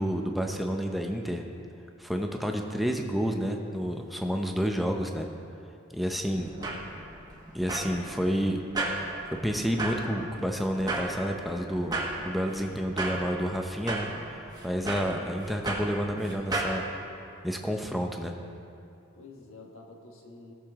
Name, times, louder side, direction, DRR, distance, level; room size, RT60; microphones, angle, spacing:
voice 1, 0.0-1.4 2.0-5.3 5.9-6.5 7.5-8.6 9.4-12.0 12.2-16.9 17.4-18.3, equal, ahead, 2 dB, 0.7 m, -30 dB
voice 2, 6.0-6.9 19.1-20.5, left 2 dB, 80° left, 0 dB, 1.4 m, -49 dB
sound 1, 6.3-16.8, right 2 dB, 20° right, 1.4 m, -35 dB
18.0 x 6.7 x 3.6 m, 2.6 s
head